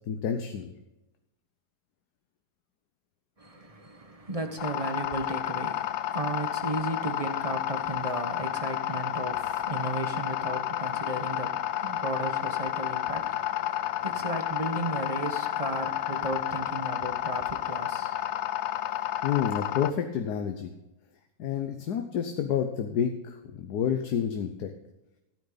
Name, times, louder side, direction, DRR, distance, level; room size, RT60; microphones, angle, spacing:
voice 1, 0.1-0.7 19.2-20.7 21.4-24.7, left 8 dB, 85° left, 1.4 m, -29 dB
voice 2, 3.4-18.2, right 2 dB, 25° right, 1.2 m, -35 dB
sound 1, 4.6-19.9, left 12 dB, 65° left, 0.7 m, -31 dB
14.0 x 9.2 x 4.0 m
omnidirectional pair, 1.7 m